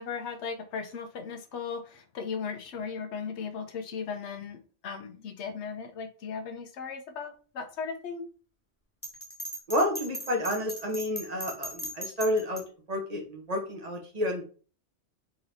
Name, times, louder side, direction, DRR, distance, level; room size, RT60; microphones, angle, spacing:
voice 1, 0.0-4.6 4.8-8.2, left 6 dB, 75° left, 6 dB, 1.0 m, -37 dB
Bell, 9.0-12.6, right 1 dB, 10° left, 1.4 m, -38 dB
voice 2, 9.7-12.6 12.9-14.4, left 1 dB, 35° right, 2 dB, 1.1 m, -30 dB
3.9 x 3.1 x 4.0 m, 0.39 s
omnidirectional pair, 1.2 m